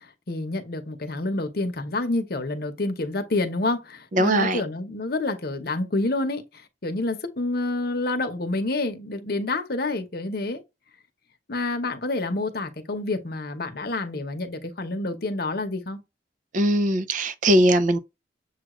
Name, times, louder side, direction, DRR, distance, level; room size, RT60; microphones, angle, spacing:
voice 1, 0.3-6.4 6.8-10.6 11.5-16.0, left 2 dB, 60° left, 0.9 m, -28 dB
voice 2, 4.1-4.6 16.5-18.0, right 1 dB, 45° right, 0.5 m, -20 dB
7.1 x 2.4 x 3.0 m
head